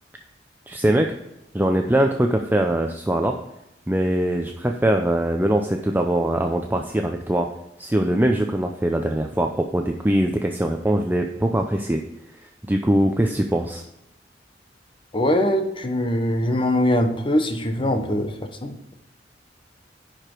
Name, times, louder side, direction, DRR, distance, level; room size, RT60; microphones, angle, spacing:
voice 1, 0.7-1.1 1.5-3.3 3.9-7.5 7.8-12.0 12.7-13.8, right 1 dB, 10° right, 3 dB, 0.5 m, -22 dB
voice 2, 15.1-18.9, left 1 dB, 30° left, 6 dB, 0.9 m, -22 dB
10.5 x 5.0 x 4.5 m, 0.86 s
head